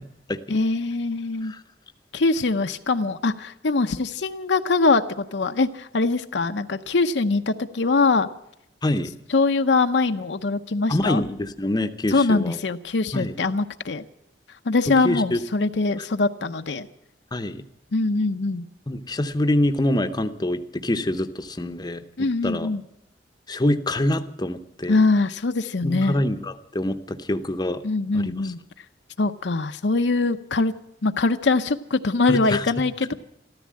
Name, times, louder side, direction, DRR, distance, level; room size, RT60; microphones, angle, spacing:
voice 1, 0.5-1.5 2.1-8.3 9.3-11.2 12.1-14.0 14.6-16.9 17.9-18.6 22.2-22.8 24.9-26.2 27.8-28.6 29.2-30.7 31.0-33.1, left 3 dB, 70° left, 8 dB, 0.7 m, -22 dB
voice 2, 8.8-9.1 10.9-12.6 13.1-13.4 15.0-15.4 17.3-17.6 18.9-22.0 22.4-22.7 23.5-25.0 25.8-27.8 28.1-28.5 32.3-32.6, left 1 dB, 25° left, 9 dB, 0.8 m, -25 dB
14.0 x 13.5 x 7.5 m, 0.80 s
head